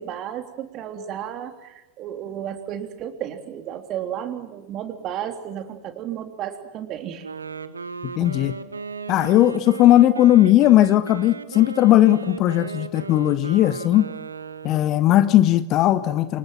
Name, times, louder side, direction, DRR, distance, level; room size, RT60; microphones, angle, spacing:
voice 1, 0.0-7.3 8.2-8.3, right 10 dB, 35° right, 7 dB, 3.4 m, -33 dB
Wind instrument woodwind instrument, 7.1-15.0, right 4 dB, 75° right, 1.4 m, -36 dB
voice 2, 8.2-8.5 9.1-14.1 14.6-16.4, left 13 dB, 35° left, 13 dB, 1.5 m, -17 dB
29.0 x 27.5 x 6.0 m, 1.0 s
figure-of-eight pair, 90°, 0 cm